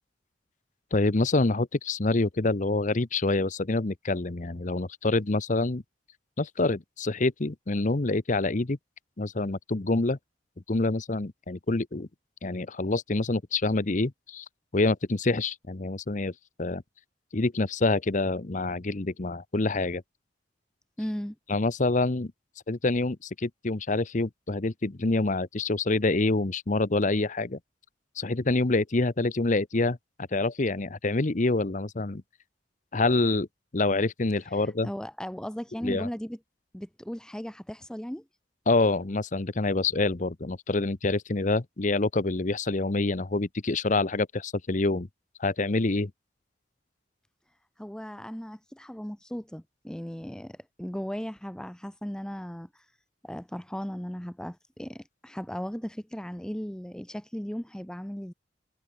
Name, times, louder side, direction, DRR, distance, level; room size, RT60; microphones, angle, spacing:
voice 1, 0.9-5.8 6.4-8.8 9.2-10.2 10.7-12.1 12.4-14.4 14.7-16.3 16.6-16.8 17.3-20.0 21.5-22.3 22.7-27.6 28.2-32.2 32.9-33.5 33.7-34.9 35.8-36.1 38.7-45.1 45.4-46.1, left 2 dB, 45° left, 0.9 m, -26 dB
voice 2, 21.0-21.4 34.5-36.4 36.7-38.2 47.8-52.9 53.2-58.3, equal, 5° left, 0.6 m, -37 dB
head